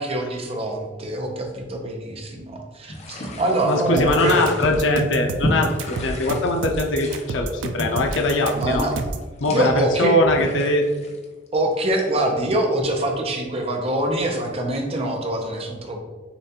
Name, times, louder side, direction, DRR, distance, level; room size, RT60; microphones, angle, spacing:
voice 1, 0.0-4.5 8.5-8.9 9.5-10.1 11.5-16.0, right 1 dB, 35° right, 2 dB, 0.6 m, -24 dB
sound 1, 2.9-12.4, left 1 dB, 35° left, 0.6 m, -33 dB
voice 2, 3.6-8.9 9.4-10.9, left 1 dB, 90° left, 2 dB, 0.6 m, -21 dB
sound 2, 4.0-9.3, right 3 dB, 80° right, 0.4 m, -30 dB
6.7 x 2.4 x 2.8 m, 1.3 s
head